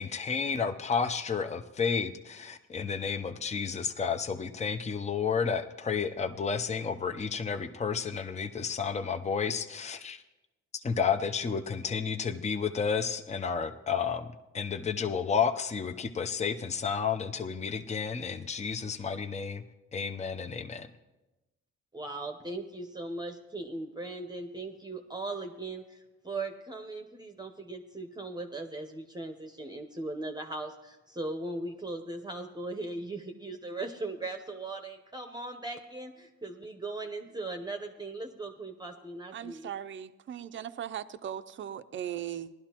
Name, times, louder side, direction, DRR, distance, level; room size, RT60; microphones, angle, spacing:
voice 1, 0.0-10.2 10.8-14.3 14.5-19.6 19.9-20.9, left 6 dB, 20° left, 8 dB, 0.6 m, -31 dB
voice 2, 21.9-39.7, right 2 dB, 15° right, 5 dB, 0.9 m, -39 dB
voice 3, 39.3-42.5, right 10 dB, 40° right, 10 dB, 0.6 m, -38 dB
18.5 x 12.0 x 3.0 m, 1.0 s
cardioid pair, 90°, 30 cm